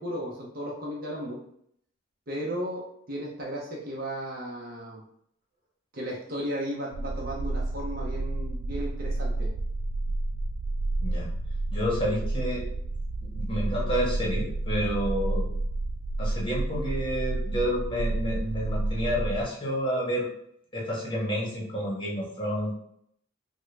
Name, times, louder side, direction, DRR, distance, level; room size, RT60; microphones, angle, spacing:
voice 1, 0.0-1.4 2.3-5.0 5.9-9.5, equal, 45° right, -4 dB, 0.7 m, -35 dB
sound 1, 6.9-19.4, right 2 dB, 85° right, 0.3 m, -30 dB
voice 2, 11.7-12.6 13.2-15.5 16.2-20.3 20.7-22.7, equal, 25° left, -3 dB, 0.9 m, -29 dB
3.6 x 2.1 x 3.2 m, 0.70 s
head